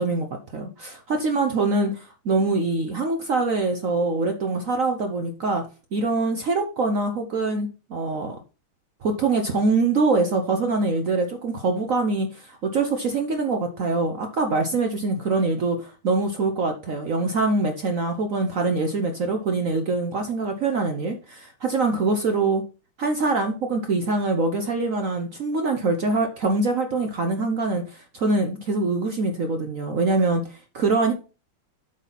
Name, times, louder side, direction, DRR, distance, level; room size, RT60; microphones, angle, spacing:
voice 1, 0.0-5.7 5.9-8.4 9.0-22.6 23.0-31.1, right 3 dB, 65° right, 5 dB, 0.8 m, -24 dB
8.0 x 4.1 x 5.8 m, 0.34 s
omnidirectional pair, 2.4 m